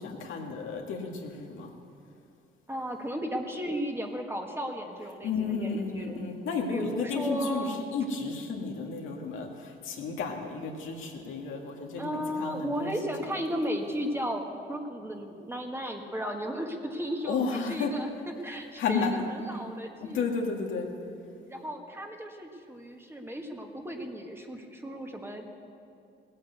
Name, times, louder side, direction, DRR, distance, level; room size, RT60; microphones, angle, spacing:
voice 1, 0.0-1.7 5.2-13.1 17.3-17.9 18.8-19.3 20.0-20.9, left 4 dB, 85° left, 1 dB, 1.9 m, -32 dB
voice 2, 2.7-5.7 5.9-6.2 6.7-7.8 12.0-18.1 18.4-20.2 21.5-25.5, equal, 10° right, 3 dB, 1.6 m, -35 dB
17.5 x 8.7 x 8.1 m, 2.5 s
cardioid pair, 90°, 20 cm